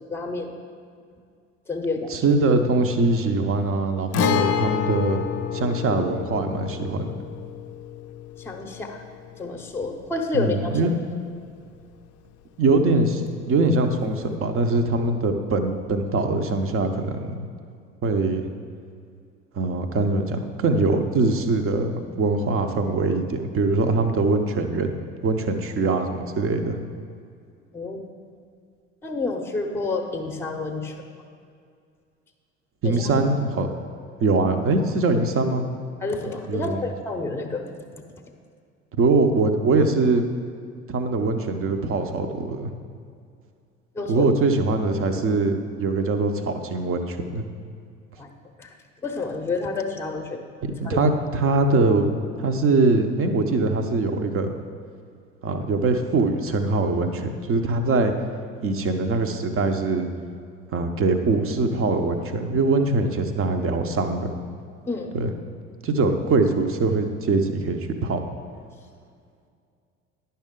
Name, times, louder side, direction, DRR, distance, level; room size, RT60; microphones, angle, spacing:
voice 1, 0.1-0.5 1.7-2.2 8.4-9.0 9.4-10.8 27.7-28.0 29.0-31.0 32.8-33.1 36.0-38.0 43.9-44.2 48.2-48.3 48.6-48.7 49.0-50.5 50.8-51.0 64.9-65.2, left 3 dB, 5° left, 4 dB, 0.8 m, -29 dB
voice 2, 2.1-5.2 5.5-7.1 10.3-11.0 12.6-17.5 18.0-18.5 19.5-24.9 25.2-26.8 32.8-33.7 34.2-35.7 36.5-36.8 39.0-40.2 40.9-42.7 44.1-47.4 50.6-54.5 55.4-58.1 58.6-60.1 60.7-64.3 65.1-65.3 65.8-68.2, right 3 dB, 35° right, 7 dB, 0.8 m, -22 dB
Guitar, 4.1-11.8 12.0-12.1 14.1-14.3, left 9 dB, 40° left, 0.4 m, -29 dB
10.5 x 5.6 x 3.7 m, 2.3 s
figure-of-eight pair, 60°, 39 cm